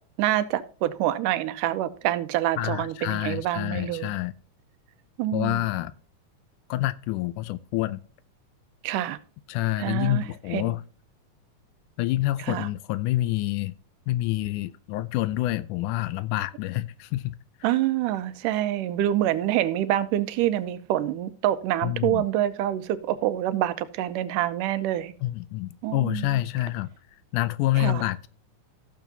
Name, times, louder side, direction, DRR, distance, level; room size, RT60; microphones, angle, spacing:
voice 1, 0.2-4.2 5.2-5.6 8.8-9.2 9.8-10.7 12.4-12.7 17.6-25.1 25.8-26.4 27.8-28.1, right 13 dB, 85° right, 2.3 m, -26 dB
voice 2, 2.6-4.3 5.3-5.9 6.7-8.0 9.5-10.8 12.0-13.7 14.1-17.4 21.8-22.3 25.2-26.9 27.3-28.3, left 16 dB, 80° left, 2.0 m, -27 dB
15.5 x 7.0 x 2.7 m
omnidirectional pair, 3.7 m